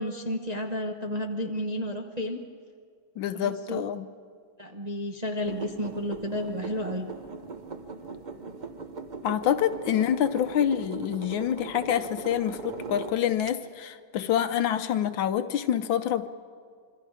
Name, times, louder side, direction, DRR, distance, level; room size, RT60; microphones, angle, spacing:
voice 1, 0.0-2.4 3.3-3.8 4.6-7.1, equal, 30° right, 3 dB, 0.8 m, -31 dB
voice 2, 3.2-4.1 9.2-16.3, left 10 dB, 70° left, 11 dB, 1.4 m, -27 dB
sound 1, 5.4-13.5, right 4 dB, 70° right, 0.4 m, -40 dB
26.5 x 24.5 x 4.9 m, 2.1 s
omnidirectional pair, 2.3 m